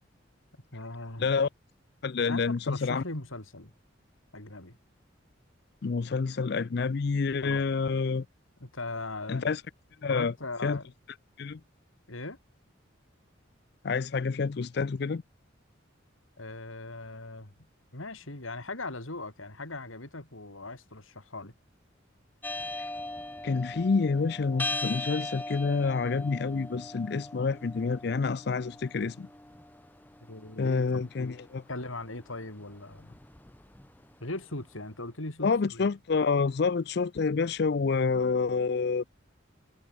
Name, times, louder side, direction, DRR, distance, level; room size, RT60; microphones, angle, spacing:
voice 1, 0.7-1.3 2.3-3.7 4.3-4.8 7.4-7.7 8.6-9.5 10.1-10.9 12.1-12.4 16.4-17.5 17.9-21.5 30.2-31.4 31.7-33.2 34.2-35.9, left 2 dB, 90° left, 4.2 m, -39 dB
voice 2, 2.0-3.0 5.8-8.3 9.3-9.6 10.0-10.3 10.6-10.8 11.4-11.6 13.8-15.2 23.4-29.3 30.6-31.6 35.4-39.0, left 4 dB, 55° left, 0.4 m, -28 dB
sound 1, 22.4-34.6, left 2 dB, 10° left, 0.8 m, -40 dB
head